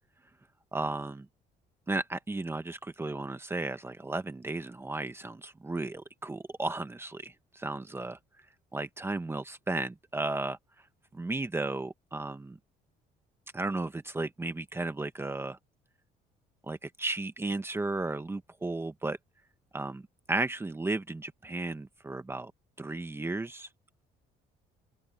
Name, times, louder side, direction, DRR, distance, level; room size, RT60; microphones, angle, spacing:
voice 1, 0.7-1.3 1.9-8.2 8.7-10.6 11.1-12.6 13.5-15.6 16.6-19.2 19.7-22.5 22.8-23.7, right 2 dB, 15° right, 1.2 m, -34 dB
open air
cardioid pair, 110°, 17 cm